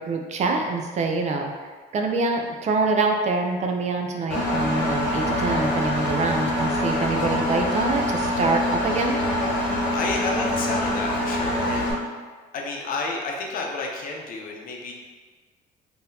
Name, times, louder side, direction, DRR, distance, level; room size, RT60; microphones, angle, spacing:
voice 1, 0.0-1.5 1.9-9.2, right 3 dB, 45° right, 3 dB, 0.4 m, -25 dB
Engine, 4.3-11.9, left 1 dB, 80° left, 0.9 m, -25 dB
voice 2, 8.9-11.9 12.5-14.9, left 3 dB, 55° left, 0 dB, 0.6 m, -31 dB
3.7 x 2.7 x 2.7 m, 1.4 s
cardioid pair, 110°, 17 cm